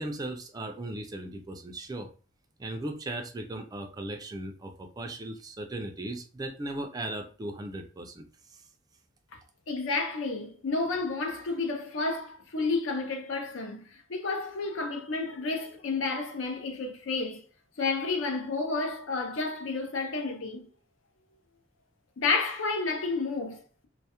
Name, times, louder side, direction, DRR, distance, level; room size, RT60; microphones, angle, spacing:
voice 1, 0.0-2.1 2.6-8.6, right 1 dB, 20° right, 0.3 m, -37 dB
voice 2, 9.7-17.4 17.8-20.7 22.2-23.9, left 3 dB, 70° left, 0.5 m, -31 dB
2.2 x 2.0 x 2.8 m
head